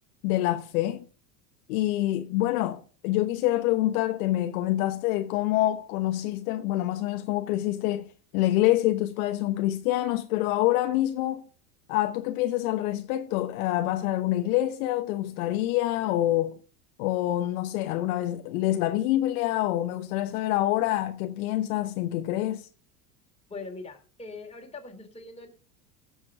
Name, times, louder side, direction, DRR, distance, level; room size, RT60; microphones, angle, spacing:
voice 1, 0.2-1.0 1.7-8.1 8.3-11.4 11.9-16.6 17.0-22.7, left 15 dB, 65° left, 1.1 m, -26 dB
voice 2, 23.5-25.5, left 3 dB, 15° left, 3.1 m, -41 dB
15.5 x 7.0 x 3.7 m
hypercardioid pair, 95°, 46 cm